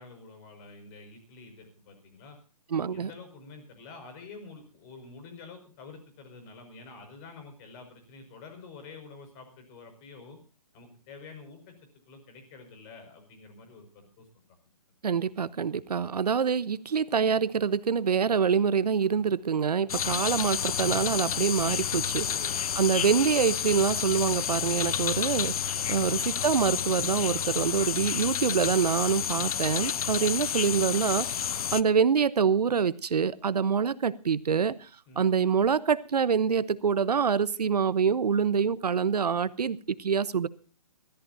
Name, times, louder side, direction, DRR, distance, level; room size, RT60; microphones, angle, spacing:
voice 1, 0.0-2.4 2.7-10.4 10.7-11.8 12.1-14.3 22.3-22.7 30.2-30.4 35.1-35.2, left 4 dB, 30° left, 6 dB, 5.7 m, -48 dB
voice 2, 2.7-3.1 15.0-22.3 22.7-25.6 25.9-34.9 35.2-40.5, right 6 dB, 80° right, 16 dB, 1.1 m, -26 dB
sound 1, 19.9-31.8, left 8 dB, 65° left, 0.7 m, -30 dB
25.0 x 14.0 x 2.7 m, 0.35 s
hypercardioid pair, 150°, 20 cm